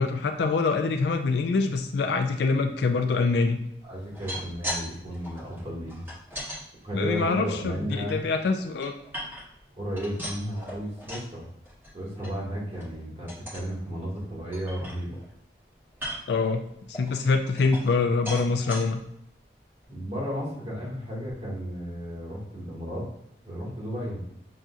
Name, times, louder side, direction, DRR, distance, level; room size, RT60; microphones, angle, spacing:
voice 1, 0.0-3.6 6.9-8.9 16.3-16.6 16.9-19.0, left 4 dB, 70° left, 6 dB, 0.4 m, -25 dB
voice 2, 3.8-6.0 6.8-8.3 9.7-11.5 11.9-15.2 19.9-23.1 23.4-24.2, equal, 35° right, -6 dB, 1.6 m, -33 dB
sound 1, 4.0-4.8 5.1-6.6 7.1-8.1 8.6-9.6 9.9-11.3 11.6-11.9 12.2-12.3 12.7-12.9 13.3-13.7 14.1-14.2 14.5-15.3 15.9-16.4 16.9-18.0 18.2-18.8 19.4-19.5 19.8-19.9, equal, 10° right, 1.1 m, -38 dB
6.2 x 2.7 x 2.3 m, 0.75 s
head